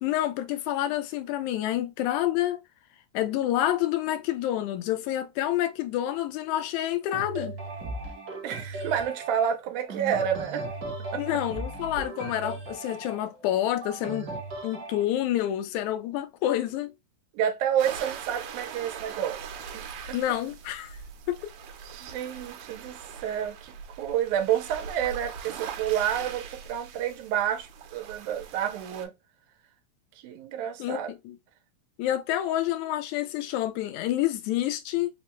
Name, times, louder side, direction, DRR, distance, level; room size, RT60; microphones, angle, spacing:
voice 1, 0.0-2.6 3.1-7.6 11.2-14.3 14.6-16.9 20.1-21.0 21.3-21.4 30.8-31.4 32.0-35.1, left 13 dB, 85° left, 2.0 m, -28 dB
sound 1, 7.1-15.0, right 2 dB, 60° right, 1.0 m, -37 dB
voice 2, 8.4-10.7 11.1-11.2 17.3-19.5 19.7-20.2 21.8-29.1 30.2-31.1, right 9 dB, 90° right, 2.1 m, -29 dB
sound 2, 17.8-29.1, right 7 dB, 75° right, 1.8 m, -41 dB
5.0 x 2.1 x 2.9 m
omnidirectional pair, 3.3 m